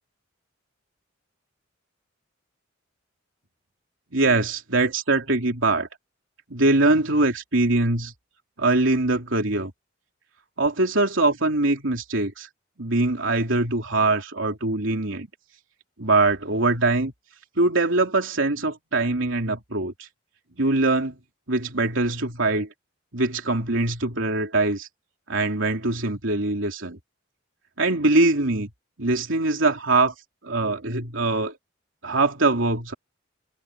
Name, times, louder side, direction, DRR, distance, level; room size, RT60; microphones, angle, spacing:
voice 1, 4.1-5.9 6.5-8.1 8.6-9.7 10.6-12.5 12.8-15.3 16.0-17.1 17.6-20.1 20.6-21.2 21.5-22.7 23.1-24.9 25.3-27.0 27.8-28.7 29.0-30.1 30.4-31.6 32.0-32.9, right 2 dB, 70° right, 3.2 m, -22 dB
head